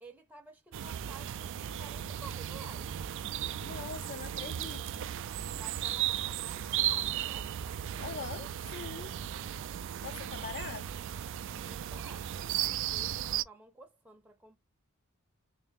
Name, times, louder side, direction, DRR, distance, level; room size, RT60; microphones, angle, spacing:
voice 1, 0.0-3.0 5.6-7.6 11.5-14.6, right 2 dB, 10° right, 0.6 m, -53 dB
sound 1, 0.7-13.4, right 11 dB, 60° right, 0.3 m, -36 dB
voice 2, 3.6-5.2 8.0-9.1 10.0-11.1, left 6 dB, 45° left, 0.4 m, -43 dB
3.3 x 2.7 x 3.5 m
head